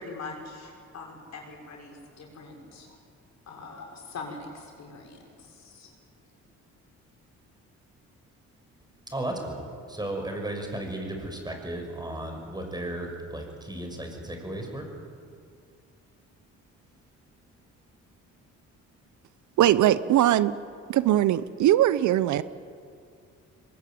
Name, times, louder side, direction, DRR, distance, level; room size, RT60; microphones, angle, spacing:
voice 1, 0.0-2.9 3.5-5.9, left 3 dB, 60° left, 1 dB, 6.3 m, -42 dB
voice 2, 9.1-14.9, right 1 dB, 15° right, 3 dB, 6.1 m, -34 dB
voice 3, 19.6-20.5 20.9-22.4, right 12 dB, 75° right, 15 dB, 0.8 m, -21 dB
22.5 x 21.0 x 9.3 m, 2.3 s
cardioid pair, 90°, 30 cm